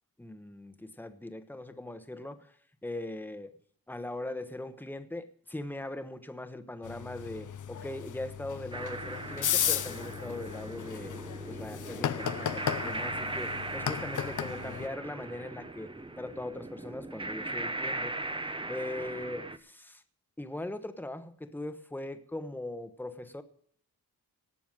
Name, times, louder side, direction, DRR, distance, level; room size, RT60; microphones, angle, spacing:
voice 1, 0.2-2.5 2.8-3.5 3.9-11.2 11.5-15.9 16.2-18.1 18.7-20.0 20.4-23.4, left 1 dB, 5° left, 10 dB, 1.1 m, -40 dB
sound 1, 6.8-14.9, left 9 dB, 60° left, 0.7 m, -35 dB
sound 2, 8.7-19.6, right 2 dB, 15° right, 0.8 m, -39 dB
18.5 x 6.9 x 7.4 m, 0.64 s
wide cardioid pair, 130°, 35 cm